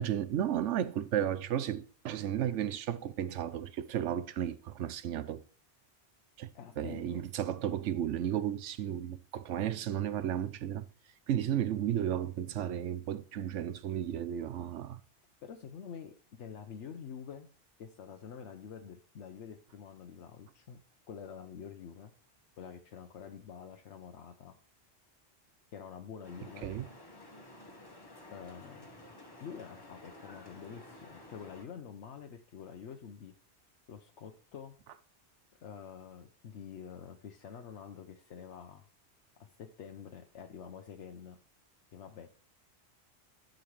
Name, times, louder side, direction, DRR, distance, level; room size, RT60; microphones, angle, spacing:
voice 1, 0.0-5.4 6.4-6.5 6.8-10.8 11.3-15.0 26.6-26.9, right 10 dB, 90° right, 1.0 m, -33 dB
voice 2, 6.5-7.2 15.4-17.5 17.8-20.8 21.1-22.1 22.6-24.6 25.7-26.7 28.3-29.0 29.4-33.3 33.9-34.7 35.6-38.9 39.4-41.4 41.9-42.3, left 7 dB, 80° left, 1.1 m, -47 dB
sound 1, 26.2-31.7, left 1 dB, 20° left, 1.2 m, -52 dB
12.0 x 6.4 x 3.2 m
omnidirectional pair, 1.2 m